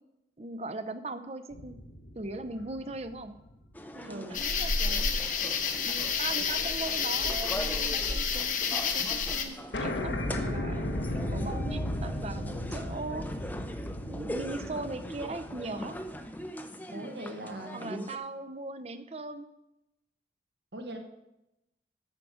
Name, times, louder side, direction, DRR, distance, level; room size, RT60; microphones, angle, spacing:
voice 1, 0.4-1.8 2.1-3.4 3.9-5.1 5.7-13.3 14.1-16.0 17.7-19.5, right 2 dB, 35° right, 10 dB, 0.6 m, -39 dB
sound 1, 1.5-4.1 4.6-4.7 6.2-6.5 6.8-8.2 8.5-8.6 8.8-8.9 9.2-9.3 9.7-16.4, left 1 dB, 85° left, 1.2 m, -36 dB
sound 2, 3.7-18.2, equal, 10° left, 0.5 m, -42 dB
sound 3, 4.3-9.4, left 5 dB, 45° left, 0.9 m, -29 dB
voice 2, 16.9-18.1 20.7-21.0, right 1 dB, 75° right, 4 dB, 1.4 m, -40 dB
11.0 x 7.5 x 4.9 m, 0.90 s
head